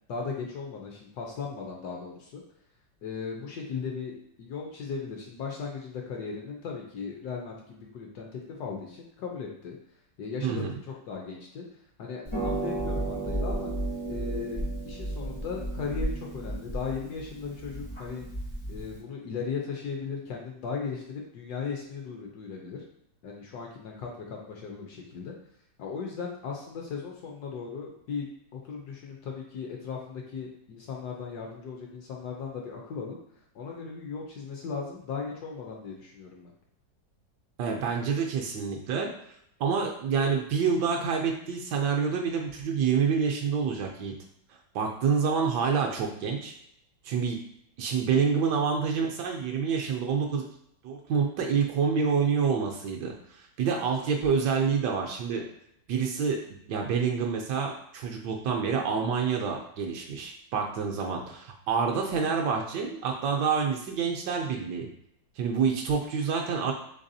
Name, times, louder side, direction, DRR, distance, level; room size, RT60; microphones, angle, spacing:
voice 1, 0.1-2.4 3.0-9.7 10.2-11.6 12.0-13.7 14.1-18.2 18.7-22.8 23.2-25.3 25.8-33.2 33.5-36.5, left 5 dB, 70° left, 0 dB, 1.0 m, -37 dB
voice 2, 10.4-10.8 37.6-39.1 39.6-44.1 44.7-46.5 47.0-47.4 47.8-50.5 50.8-55.4 55.9-56.4 56.7-64.9 65.4-66.7, right 6 dB, 75° right, 1 dB, 1.1 m, -27 dB
Harp, 12.2-19.0, right 1 dB, 45° left, 0.3 m, -33 dB
4.0 x 3.3 x 2.6 m, 0.73 s
omnidirectional pair, 2.1 m